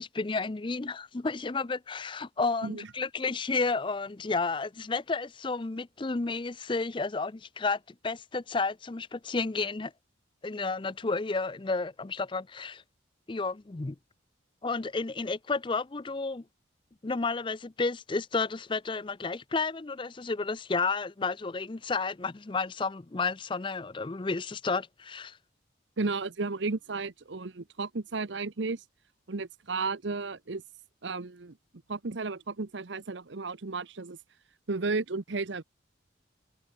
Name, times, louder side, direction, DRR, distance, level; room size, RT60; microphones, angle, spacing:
voice 1, 0.0-9.9 10.4-12.8 13.3-14.0 14.6-16.4 17.0-25.4, left 4 dB, 25° left, 0.5 m, -31 dB
voice 2, 26.0-28.8 29.3-30.6 31.0-31.6 31.9-34.2 34.7-35.6, right 3 dB, 70° right, 0.9 m, -33 dB
head